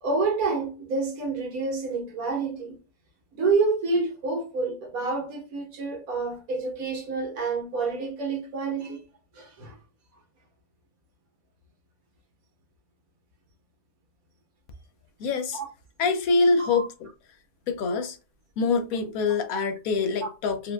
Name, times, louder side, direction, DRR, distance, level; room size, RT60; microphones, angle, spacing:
voice 1, 0.0-2.8 3.3-9.0 9.3-9.8 16.6-16.9, right 4 dB, 80° right, 1.5 m, -28 dB
voice 2, 15.2-15.6 16.0-17.1 17.7-18.2 18.6-20.7, left 4 dB, 80° left, 1.1 m, -25 dB
4.3 x 2.4 x 2.3 m
omnidirectional pair, 1.5 m